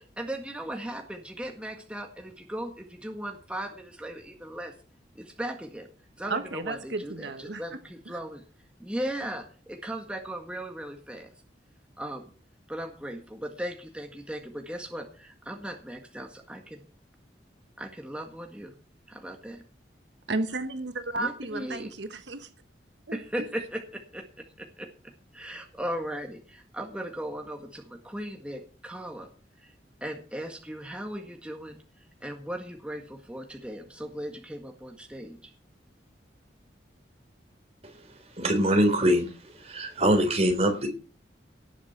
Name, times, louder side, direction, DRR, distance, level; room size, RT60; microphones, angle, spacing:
voice 1, 0.0-4.8 5.2-5.9 6.2-8.4 8.8-11.3 12.0-12.3 12.7-16.8 17.8-18.7 19.1-19.6 21.1-21.9 23.1-29.3 29.6-29.7 30.0-35.5, right 1 dB, 5° right, 3 dB, 1.7 m, -37 dB
voice 2, 6.3-7.6 8.1-8.2 20.3-22.5 23.1-23.5, right 2 dB, 75° right, 9 dB, 1.3 m, -33 dB
voice 3, 38.4-40.9, equal, 35° right, 4 dB, 3.8 m, -24 dB
18.0 x 7.4 x 5.9 m, 0.36 s
head